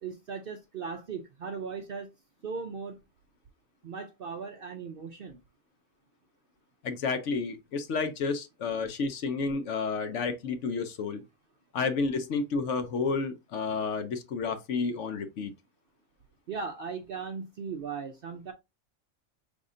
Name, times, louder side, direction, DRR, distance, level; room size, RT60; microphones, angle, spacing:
voice 1, 0.0-2.1 2.4-3.0 3.8-5.4 16.5-18.5, right 5 dB, 60° right, 0.6 m, -38 dB
voice 2, 6.8-11.2 11.7-15.5, left 4 dB, 65° left, 1.0 m, -31 dB
5.2 x 3.5 x 2.5 m
omnidirectional pair, 1.4 m